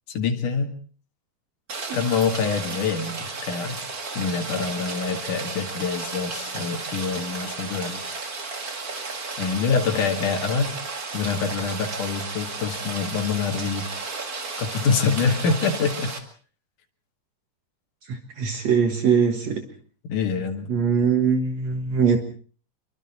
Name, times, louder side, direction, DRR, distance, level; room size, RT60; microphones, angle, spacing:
voice 1, 0.1-0.7 1.9-3.8 4.2-8.0 9.4-10.7 11.1-13.9 14.6-16.1 20.1-20.7, left 5 dB, 85° left, 3 dB, 3.5 m, -25 dB
Rain, 1.7-16.2, right 4 dB, 30° right, 2.4 m, -33 dB
voice 2, 18.0-19.6 20.7-22.2, right 6 dB, 60° right, 6 dB, 2.6 m, -22 dB
26.5 x 23.5 x 4.2 m, 0.43 s
omnidirectional pair, 3.5 m